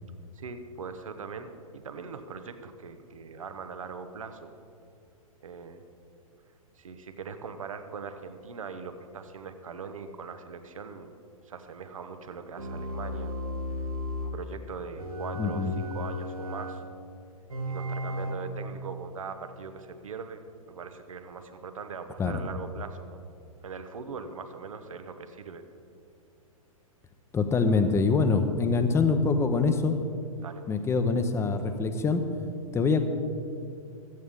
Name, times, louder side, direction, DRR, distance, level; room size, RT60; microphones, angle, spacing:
voice 1, 0.3-4.5 5.4-5.8 6.8-11.1 11.5-13.3 14.2-16.8 17.7-20.4 20.7-23.2 23.6-25.6 30.4-30.7, right 5 dB, 65° right, 9 dB, 1.2 m, -41 dB
sound 1, 12.6-14.4 15.0-16.8 17.5-18.3, left 1 dB, 80° right, 2.0 m, -34 dB
voice 2, 15.4-15.7 22.2-22.4 27.3-30.0 30.7-32.2 32.7-33.0, left 4 dB, 15° left, 8 dB, 1.0 m, -24 dB
16.5 x 13.5 x 3.7 m, 2.4 s
figure-of-eight pair, 105°, 18 cm